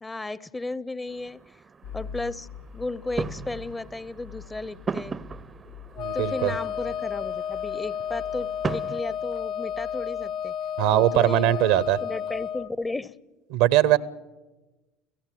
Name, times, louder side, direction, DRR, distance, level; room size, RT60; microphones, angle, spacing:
voice 1, 0.0-1.4 1.9-2.5 2.7-5.2 6.1-10.5 10.9-11.5 12.0-13.2, left 2 dB, 15° left, 19 dB, 0.8 m, -34 dB
sound 1, 1.1-9.0, right 5 dB, 30° right, 0.7 m, -38 dB
sound 2, 1.8-12.8, left 6 dB, 75° left, 1.6 m, -46 dB
Wind instrument woodwind instrument, 5.9-12.7, left 9 dB, 55° left, 0.7 m, -32 dB
voice 2, 6.0-6.6 10.8-12.0 13.5-14.0, right 14 dB, 65° right, 19 dB, 0.8 m, -21 dB
30.0 x 16.5 x 7.7 m, 1.1 s
hypercardioid pair, 70°, 0 cm